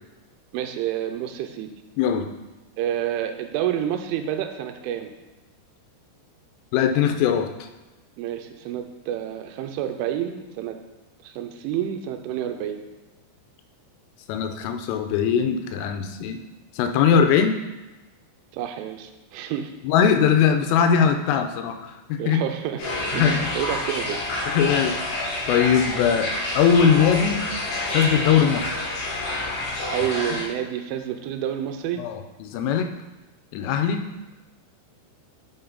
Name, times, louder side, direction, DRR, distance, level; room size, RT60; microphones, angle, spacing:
voice 1, 0.5-1.7 2.8-5.1 8.2-10.8 11.2-12.8 18.5-19.7 22.2-22.8 23.1-24.2 29.9-32.0, right 10 dB, 85° right, 6 dB, 3.1 m, -29 dB
voice 2, 2.0-2.3 6.7-7.7 14.3-16.4 16.7-17.6 19.8-22.4 23.1-23.5 24.5-27.4 27.9-28.7 30.3-30.4 32.0-32.9 33.5-34.0, left 7 dB, 85° left, 6 dB, 3.3 m, -21 dB
sound 1, 22.8-30.4, left 1 dB, 65° left, 3.6 m, -28 dB
9.9 x 6.1 x 3.9 m, 1.1 s
omnidirectional pair, 5.7 m